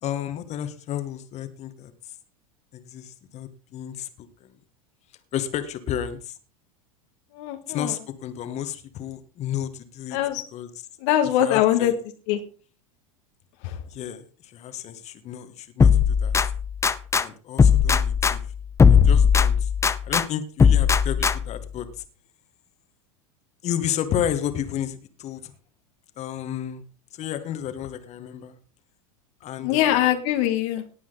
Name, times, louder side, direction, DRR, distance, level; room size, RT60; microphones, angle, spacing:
voice 1, 0.0-1.9 2.7-4.3 5.3-6.4 7.7-10.2 10.5-10.7 11.4-11.9 13.9-16.4 17.1-18.4 18.9-19.7 20.1-21.9 23.6-25.5 26.2-26.8 27.1-28.5 29.4-30.1, left 10 dB, 40° left, 10 dB, 1.9 m, -32 dB
voice 2, 7.3-7.9 10.1-10.4 11.0-11.9 12.3-12.4 13.6-13.8 29.6-30.8, left 12 dB, 55° left, 6 dB, 1.7 m, -22 dB
sound 1, 15.8-17.2 17.6-20.2 20.6-21.6, left 6 dB, 15° left, 0.8 m, -18 dB
18.5 x 8.5 x 4.1 m, 0.39 s
hypercardioid pair, 90°, 18 cm